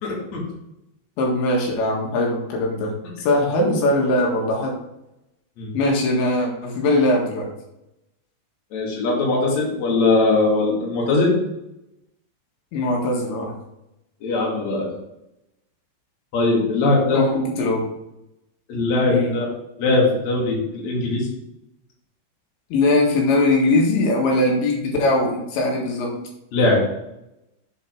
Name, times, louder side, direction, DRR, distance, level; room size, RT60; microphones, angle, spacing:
voice 1, 0.0-0.4 5.6-5.7 8.7-11.4 14.2-14.9 16.3-17.2 18.7-19.5 19.8-21.3 26.5-26.8, left 2 dB, 45° left, -3 dB, 3.2 m, -20 dB
voice 2, 1.2-2.9 3.2-4.7 5.7-7.5 12.7-13.6 17.1-17.8 19.1-19.4 22.7-26.3, left 2 dB, 80° left, -1 dB, 4.0 m, -21 dB
7.7 x 7.3 x 4.6 m, 0.86 s
omnidirectional pair, 5.2 m